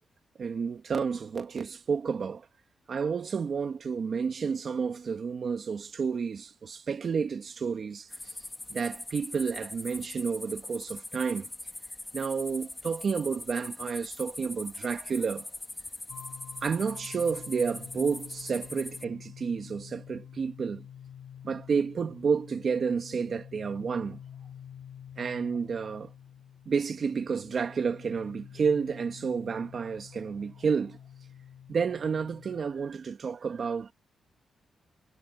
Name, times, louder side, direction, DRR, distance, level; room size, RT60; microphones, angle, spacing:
voice 1, 0.4-2.5 2.9-8.3 8.7-11.5 12.1-15.5 16.6-20.9 21.4-24.2 25.2-26.1 26.7-31.0 31.7-33.9, right 6 dB, 45° right, 2.2 m, -30 dB
sound 1, 8.1-19.0, left 2 dB, 10° left, 2.8 m, -42 dB
sound 2, 16.1-32.6, left 9 dB, 65° left, 3.9 m, -48 dB
wide cardioid pair, 150°, 0 cm